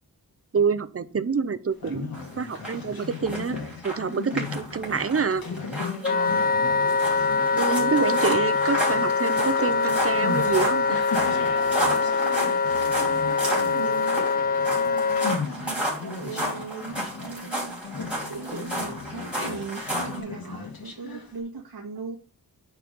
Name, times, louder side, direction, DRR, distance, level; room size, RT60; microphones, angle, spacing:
voice 1, 0.5-2.1 2.4-3.6 3.8-5.4 7.6-11.0, right 5 dB, 35° right, 13 dB, 0.6 m, -26 dB
Conversation, 1.7-21.4, left 4 dB, 65° left, 2.0 m, -37 dB
sound 1, 2.1-20.2, right 1 dB, 5° right, 3.7 m, -33 dB
Wind instrument woodwind instrument, 6.0-15.4, left 5 dB, 25° left, 0.4 m, -24 dB
voice 2, 6.1-6.4 7.5-8.3 11.8-17.8 18.3-22.2, right 5 dB, 75° right, -2 dB, 1.9 m, -39 dB
9.8 x 4.7 x 5.4 m, 0.36 s
wide cardioid pair, 170°, 38 cm